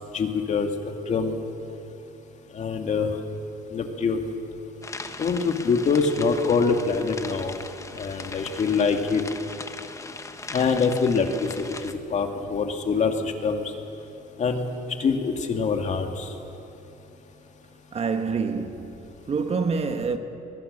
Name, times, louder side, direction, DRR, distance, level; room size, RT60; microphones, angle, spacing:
voice 1, 0.1-0.7 1.1-1.4 2.5-3.1 3.7-4.3 5.2-7.6 7.9-9.2 10.5-13.7 14.4-14.7 15.0-16.3, left 5 dB, 45° left, 2.3 m, -24 dB
sound 1, 4.8-11.9, left 3 dB, 20° left, 1.2 m, -39 dB
voice 2, 17.9-20.2, right 5 dB, 35° right, 1.5 m, -27 dB
23.0 x 21.5 x 6.8 m
cardioid pair, 110°, 17 cm